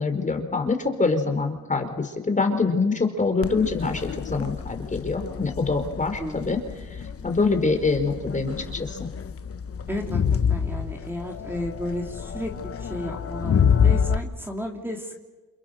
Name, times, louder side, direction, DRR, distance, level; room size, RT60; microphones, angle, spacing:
voice 1, 0.0-6.6 7.2-9.1, left 4 dB, 25° left, 6 dB, 4.4 m, -25 dB
Crowd, 3.4-14.2, left 7 dB, 50° left, 1.4 m, -27 dB
voice 2, 6.2-6.7 9.9-15.2, equal, 5° right, 1 dB, 3.1 m, -33 dB
30.0 x 29.0 x 6.6 m, 1.2 s
cardioid pair, 90°, 30 cm